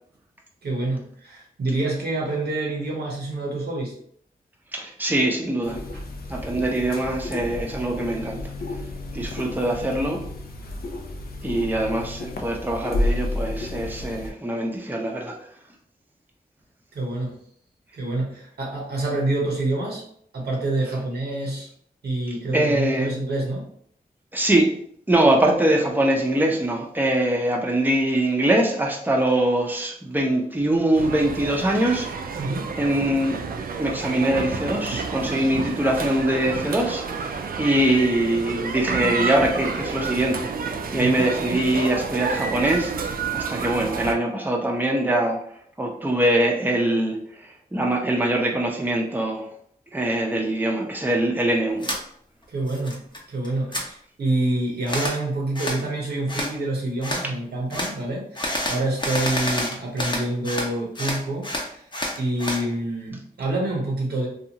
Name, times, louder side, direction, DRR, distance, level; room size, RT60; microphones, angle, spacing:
voice 1, 0.6-3.9 5.9-6.0 16.9-17.4 17.9-20.0 20.3-21.7 22.0-23.6 32.4-32.7 41.0-41.3 52.5-53.0 53.3-61.9 62.2-64.3, right 2 dB, 90° right, -2 dB, 0.8 m, -27 dB
voice 2, 4.7-5.8 6.3-8.4 9.1-10.2 11.4-15.3 22.5-23.1 24.3-24.7 25.1-32.1 32.8-33.4 33.8-40.5 40.9-42.9 43.3-45.4 45.8-47.2 47.7-49.5 49.9-51.9, right 1 dB, 10° right, 0 dB, 0.6 m, -23 dB
sound 1, 5.6-14.3, left 2 dB, 70° left, 0.5 m, -31 dB
sound 2, 30.9-44.1, right 5 dB, 65° right, 0.4 m, -30 dB
sound 3, 51.8-52.0 52.4-53.2 53.4-53.8 54.9-55.2 55.5-55.8 56.3-56.5 57.0-57.2 57.7-57.9 58.3-60.7 60.9-62.6, left 1 dB, 30° left, 0.7 m, -28 dB
2.6 x 2.4 x 2.8 m, 0.65 s
cardioid pair, 50°, 16 cm